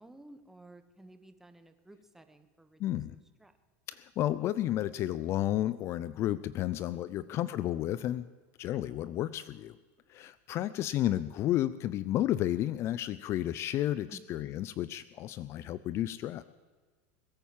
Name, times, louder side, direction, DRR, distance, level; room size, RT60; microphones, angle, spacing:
voice 1, 0.0-3.6 6.9-7.5 10.8-11.3 14.1-14.6, right 1 dB, 5° right, 9 dB, 1.2 m, -55 dB
voice 2, 2.8-3.2 3.9-8.3 8.6-9.8 10.1-16.4, left 13 dB, 40° left, 16 dB, 0.5 m, -32 dB
21.0 x 9.3 x 7.3 m, 1.4 s
supercardioid pair, 135°, 7 cm